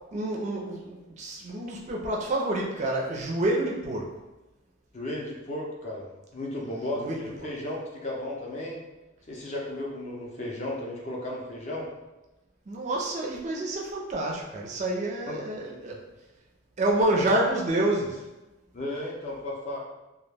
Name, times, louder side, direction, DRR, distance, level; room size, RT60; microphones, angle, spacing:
voice 1, 0.1-4.1 7.0-7.5 12.7-16.0 16.8-18.2, right 1 dB, 35° right, -1 dB, 0.4 m, -28 dB
voice 2, 4.9-8.8 9.3-11.9 15.3-15.4 15.9-16.0 18.7-19.8, left 1 dB, 35° left, -2 dB, 0.5 m, -34 dB
2.2 x 2.1 x 3.2 m, 1.0 s
head